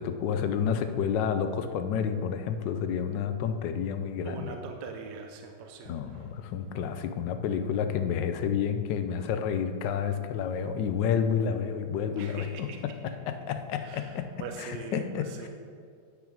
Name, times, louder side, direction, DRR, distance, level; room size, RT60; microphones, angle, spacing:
voice 1, 0.0-4.6 5.9-14.3 14.6-15.5, left 7 dB, 80° left, 8 dB, 1.3 m, -30 dB
voice 2, 4.2-5.9 12.2-12.8 13.8-15.5, right 5 dB, 75° right, 4 dB, 1.3 m, -42 dB
10.0 x 5.9 x 5.2 m, 2.3 s
omnidirectional pair, 2.0 m